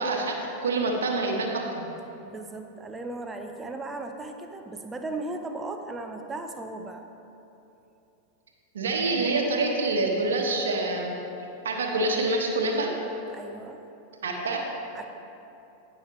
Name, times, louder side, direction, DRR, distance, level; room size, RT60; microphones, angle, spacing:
voice 1, 0.0-1.6 8.7-11.1 11.6-12.9 14.2-14.6, right 2 dB, 65° right, 1 dB, 1.1 m, -26 dB
voice 2, 2.2-7.1 13.3-13.8 14.9-15.0, right 2 dB, 15° right, 5 dB, 0.7 m, -36 dB
16.0 x 6.0 x 3.2 m, 2.9 s
figure-of-eight pair, 90°, 0 cm